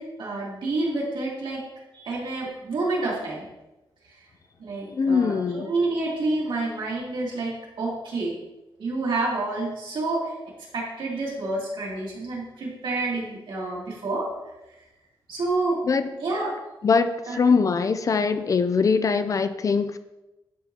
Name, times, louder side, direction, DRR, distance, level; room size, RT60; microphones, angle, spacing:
voice 1, 0.0-1.6 1.9-3.5 4.0-4.2 4.6-8.4 8.8-10.3 10.7-14.3 15.3-15.8 16.2-16.5 17.3-17.4, right 2 dB, 65° right, -4 dB, 2.4 m, -28 dB
voice 2, 4.9-5.7 15.9-16.1 16.8-20.0, left 5 dB, 40° left, 10 dB, 0.3 m, -22 dB
11.0 x 4.1 x 2.7 m, 0.98 s
wide cardioid pair, 135°, 9 cm